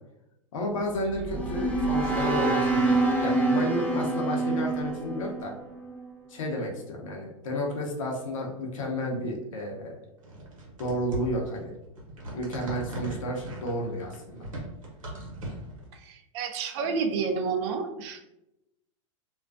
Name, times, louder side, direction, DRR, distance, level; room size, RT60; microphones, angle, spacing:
voice 1, 0.5-5.5 6.3-10.0 10.8-11.7 12.3-14.5, left 1 dB, 75° left, 0 dB, 0.7 m, -32 dB
sound 1, 0.8-6.1, right 2 dB, 10° left, 0.4 m, -26 dB
sound 2, 10.2-15.9, right 1 dB, 80° right, 0.9 m, -39 dB
voice 2, 15.9-18.2, right 5 dB, 55° right, 4 dB, 0.4 m, -30 dB
2.4 x 2.2 x 2.4 m, 0.90 s
hypercardioid pair, 105°, 17 cm